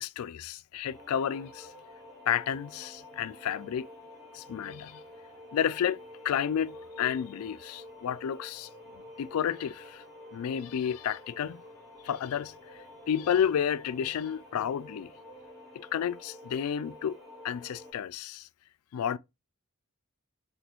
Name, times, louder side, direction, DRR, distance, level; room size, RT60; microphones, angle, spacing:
voice 1, 0.0-1.7 2.3-3.9 4.3-5.0 5.5-6.0 6.2-8.7 9.2-10.0 10.3-11.6 12.0-12.5 13.1-15.1 15.7-17.2 17.4-18.5 18.9-19.2, left 8 dB, 90° left, 0.3 m, -31 dB
sound 1, 0.9-17.9, left 1 dB, ahead, 2.5 m, -49 dB
5.9 x 3.0 x 3.0 m
head